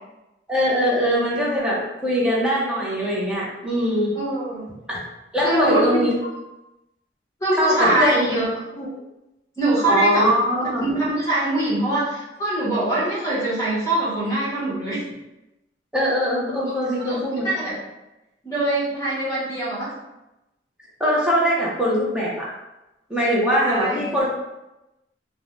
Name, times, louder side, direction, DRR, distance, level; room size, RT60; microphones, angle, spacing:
voice 1, 0.5-4.1 4.9-5.0 5.3-6.2 7.6-8.3 8.8-8.9 9.9-10.8 15.9-17.5 21.0-22.5 23.1-24.3, equal, 5° right, -5 dB, 0.6 m, -21 dB
voice 2, 4.1-4.7 5.4-6.0 7.4-8.4 9.6-10.3 10.8-15.0 17.0-17.8 18.4-19.9 23.6-24.1, right 1 dB, 15° left, -8 dB, 0.9 m, -23 dB
2.5 x 2.1 x 3.0 m, 0.97 s
head